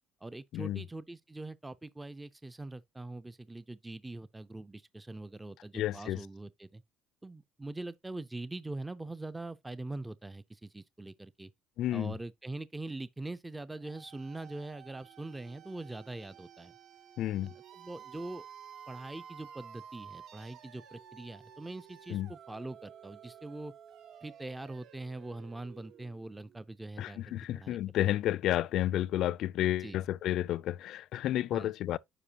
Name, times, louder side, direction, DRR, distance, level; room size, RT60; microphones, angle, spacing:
voice 1, 0.2-6.8 7.2-11.5 11.9-16.7 17.4-18.4 18.9-23.7 24.2-27.2 27.5-27.8 29.8-30.0 31.5-31.7, right 2 dB, 10° right, 0.4 m, -43 dB
voice 2, 5.7-6.2 11.8-12.1 17.2-17.5 22.1-22.3 27.0-32.0, left 13 dB, 60° left, 0.3 m, -31 dB
sound 1, 13.8-26.6, right 8 dB, 60° right, 0.7 m, -52 dB
9.9 x 5.0 x 2.8 m
cardioid pair, 135°, 0 cm